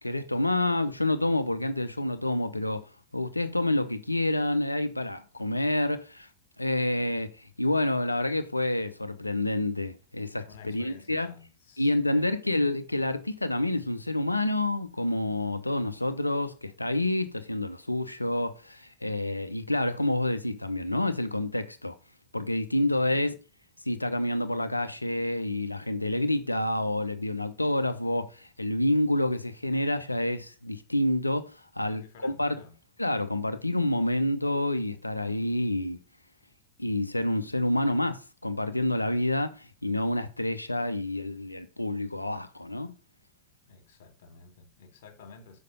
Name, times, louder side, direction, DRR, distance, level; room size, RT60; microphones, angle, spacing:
voice 1, 0.0-6.3 6.6-11.3 11.8-22.0 22.3-23.3 23.9-32.6 33.0-36.0 36.8-42.9, left 1 dB, 85° left, 0.6 m, -28 dB
voice 2, 10.5-12.4 22.9-23.2 31.8-32.8 43.7-45.6, left 5 dB, 55° left, 1.9 m, -51 dB
6.7 x 4.6 x 5.2 m
figure-of-eight pair, 90°, 0 cm